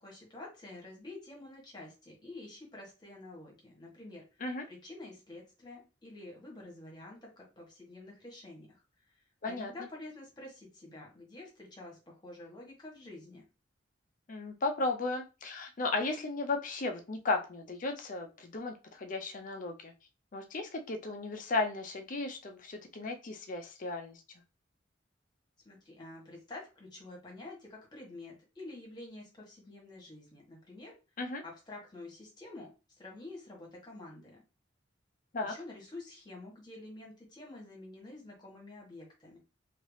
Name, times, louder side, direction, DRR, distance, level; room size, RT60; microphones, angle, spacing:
voice 1, 0.0-4.2 4.7-8.8 9.4-13.4 25.6-30.9 31.4-32.7 33.0-34.4 35.4-39.4, left 2 dB, 25° left, -2 dB, 1.3 m, -48 dB
voice 2, 14.3-19.9 20.3-24.2 31.2-31.4 35.3-35.5, left 3 dB, 45° left, 4 dB, 0.5 m, -35 dB
2.9 x 2.8 x 3.2 m, 0.30 s
head